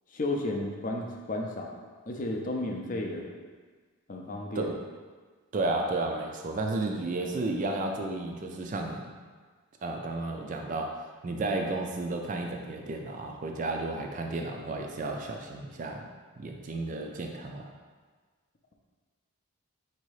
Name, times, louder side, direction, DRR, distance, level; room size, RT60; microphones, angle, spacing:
voice 1, 0.1-1.8 2.1-3.3 4.1-4.7, left 2 dB, 35° left, 1 dB, 0.4 m, -33 dB
voice 2, 5.5-9.1 9.8-11.0 11.2-16.1 16.4-17.7, right 2 dB, 35° right, 2 dB, 0.3 m, -32 dB
4.0 x 2.7 x 4.7 m, 1.5 s
head